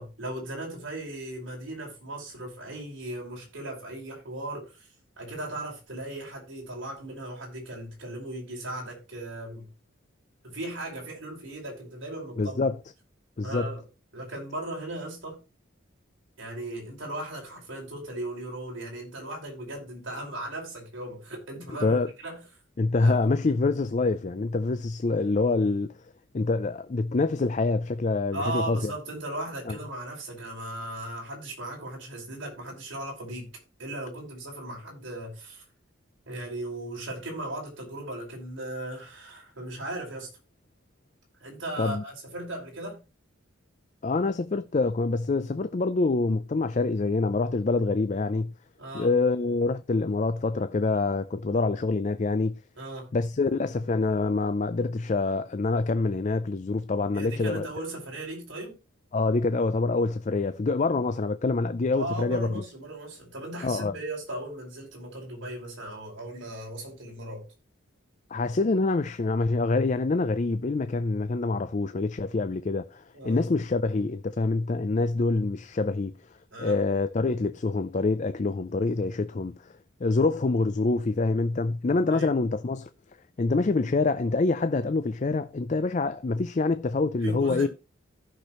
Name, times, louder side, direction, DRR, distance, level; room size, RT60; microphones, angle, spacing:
voice 1, 0.0-4.9 5.2-9.7 10.4-12.7 13.4-13.8 14.1-15.4 16.4-22.4 23.0-23.2 28.3-33.5 33.8-35.6 36.3-40.3 41.4-43.0 48.8-49.1 52.8-53.1 57.1-58.8 61.9-67.4 73.1-73.4 76.5-76.8 82.1-82.3 87.2-87.7, right 1 dB, 65° right, 5.2 m, -37 dB
voice 2, 12.4-12.8 13.4-13.7 21.8-22.1 22.8-25.9 26.3-28.9 29.7-29.8 41.8-42.0 44.0-48.5 48.9-52.6 53.1-57.7 59.1-62.5 63.6-64.0 68.3-76.1 76.6-79.5 80.0-82.9 83.4-87.7, left 3 dB, 35° left, 0.4 m, -26 dB
15.0 x 6.0 x 3.1 m
head